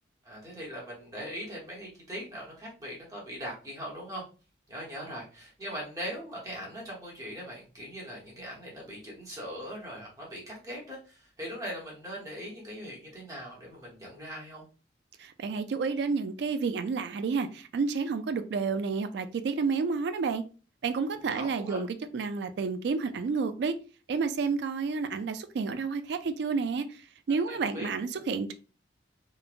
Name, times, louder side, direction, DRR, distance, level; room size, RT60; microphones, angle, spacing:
voice 1, 0.2-4.2 4.7-14.7 21.3-21.8 27.5-27.9, equal, 20° right, -4 dB, 0.9 m, -40 dB
voice 2, 15.2-20.4 20.8-23.8 24.1-26.9 27.3-28.5, right 5 dB, 65° right, 9 dB, 0.3 m, -30 dB
3.1 x 2.1 x 2.4 m, 0.34 s
head